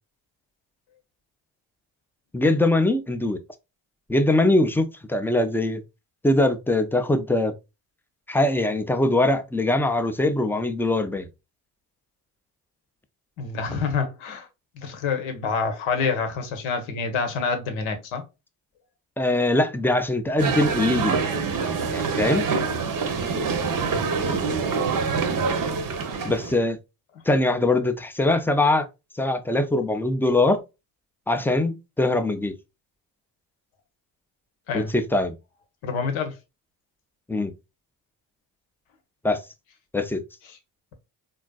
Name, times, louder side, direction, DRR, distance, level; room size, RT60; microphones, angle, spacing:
voice 1, 2.3-3.4 4.1-5.8 6.2-7.5 8.3-11.3 19.2-21.2 21.9-22.5 26.2-26.8 27.3-28.9 29.1-30.6 31.3-32.5 34.7-35.4 37.3-37.5 39.2-39.4 39.9-40.2, left 2 dB, 5° left, 0.4 m, -22 dB
voice 2, 13.4-14.5 14.7-18.2 23.8-24.1 34.7-34.9 35.8-36.4, left 5 dB, 75° left, 1.0 m, -27 dB
sound 1, 20.4-26.6, right 5 dB, 40° right, 0.7 m, -25 dB
3.8 x 2.4 x 2.2 m
hypercardioid pair, 45°, 49 cm